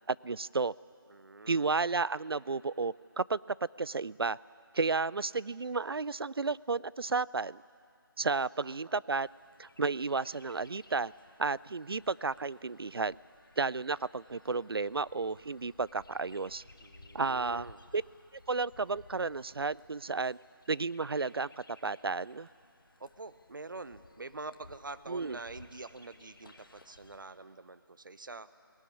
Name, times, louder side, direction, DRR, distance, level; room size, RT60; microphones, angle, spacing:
voice 1, 0.1-0.7 1.5-3.4 3.8-4.4 4.7-7.6 8.2-9.3 9.6-11.1 11.4-13.2 13.6-16.6 17.1-17.7 17.9-18.0 18.5-20.4 20.7-21.5 21.8-22.5 25.1-25.4, right 4 dB, 75° right, 21 dB, 0.4 m, -32 dB
voice 2, 1.1-1.7 8.6-8.9 16.8-17.8 23.0-28.6, right 3 dB, 60° right, 14 dB, 0.8 m, -46 dB
Chirp tweet, 9.2-27.2, left 2 dB, 60° left, 1.7 m, -59 dB
19.0 x 18.5 x 9.7 m, 2.4 s
figure-of-eight pair, 170°, 13 cm